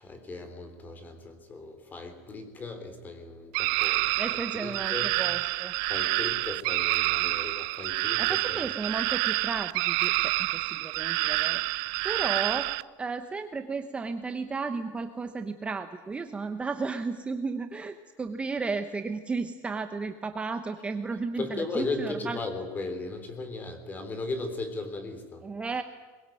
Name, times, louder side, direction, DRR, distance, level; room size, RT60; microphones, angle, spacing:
voice 1, 0.0-5.1 5.9-8.7 21.4-25.5, left 3 dB, 20° left, 9 dB, 3.4 m, -37 dB
sound 1, 3.5-12.8, right 23 dB, 65° right, 0.7 m, -28 dB
voice 2, 4.2-5.7 8.2-22.4 25.4-25.8, right 4 dB, 15° right, 7 dB, 0.9 m, -34 dB
23.0 x 21.0 x 9.1 m, 1.4 s
cardioid pair, 165°, 9 cm